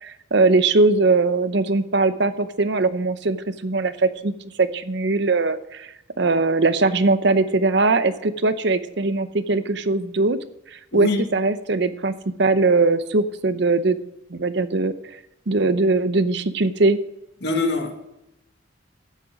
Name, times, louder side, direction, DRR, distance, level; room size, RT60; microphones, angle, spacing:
voice 1, 0.0-10.4 10.7-14.0 14.3-14.9 15.5-17.0, right 3 dB, 60° right, 12 dB, 0.8 m, -21 dB
voice 2, 10.9-11.2 17.4-17.9, left 2 dB, 60° left, 3 dB, 2.2 m, -23 dB
13.0 x 9.1 x 5.3 m, 0.85 s
head